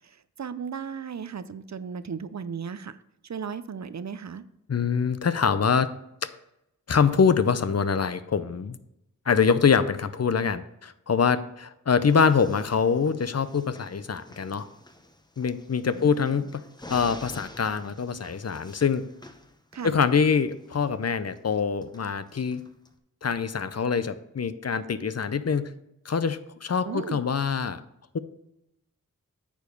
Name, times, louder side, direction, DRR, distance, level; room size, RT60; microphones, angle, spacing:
voice 1, 0.4-2.9 3.3-4.4 15.9-16.4 19.7-20.0 26.8-27.2, right 6 dB, 55° right, 14 dB, 0.5 m, -35 dB
voice 2, 4.7-5.9 6.9-8.8 9.3-14.7 15.4-16.6 16.9-19.0 19.8-22.6 23.2-25.7 26.1-27.8 28.1-28.2, left 6 dB, 50° left, 13 dB, 0.6 m, -24 dB
sound 1, 12.1-22.9, left 1 dB, 15° left, 0.8 m, -49 dB
9.1 x 4.9 x 5.2 m, 0.83 s
wide cardioid pair, 60°, 32 cm